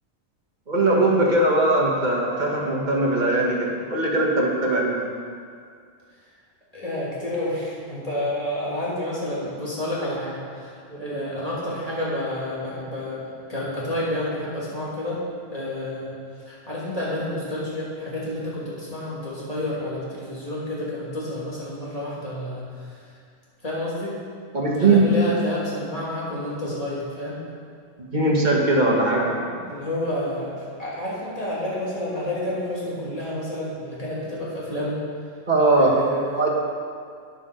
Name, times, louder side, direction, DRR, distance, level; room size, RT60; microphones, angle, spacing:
voice 1, 0.7-5.1 11.0-11.2 24.5-25.1 28.0-29.9 35.5-36.0 36.3-36.5, right 2 dB, 35° right, -3 dB, 1.7 m, -20 dB
voice 2, 6.7-15.2 15.5-16.2 16.5-22.9 23.6-24.2 24.7-27.4 29.7-30.5 30.8-35.0 35.7-36.4, left 1 dB, 25° left, -7 dB, 2.9 m, -29 dB
10.0 x 7.4 x 6.3 m, 2.2 s
omnidirectional pair, 1.5 m